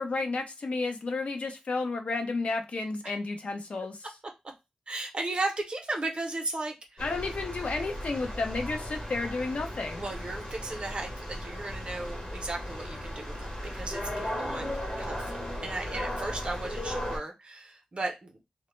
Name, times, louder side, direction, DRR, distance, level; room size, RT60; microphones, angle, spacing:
voice 1, 0.0-4.0 7.0-10.0, left 3 dB, 60° left, 5 dB, 0.5 m, -32 dB
voice 2, 4.9-7.0 10.0-18.3, right 2 dB, 45° right, 3 dB, 0.6 m, -36 dB
sound 1, 7.0-17.2, left 1 dB, 40° left, 0.9 m, -36 dB
2.1 x 2.0 x 3.0 m, 0.23 s
wide cardioid pair, 110°, 2 cm